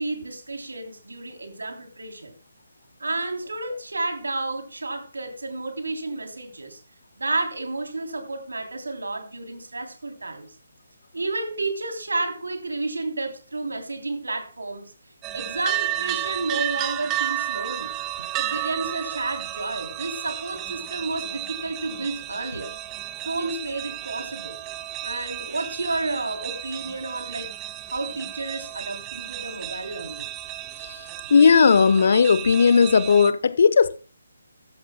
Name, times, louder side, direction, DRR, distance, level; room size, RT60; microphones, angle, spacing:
voice 1, 0.0-2.3 3.0-6.8 7.2-10.5 11.1-14.9 15.3-17.9 18.2-22.7 23.2-24.6 25.0-27.5 27.9-30.3, right 2 dB, 75° right, 3.3 m, -31 dB
sound 1, 15.2-33.3, right 14 dB, 20° right, 0.6 m, -33 dB
voice 2, 31.3-34.0, left 5 dB, 55° left, 0.9 m, -16 dB
14.5 x 13.5 x 2.2 m
figure-of-eight pair, 145°, 0 cm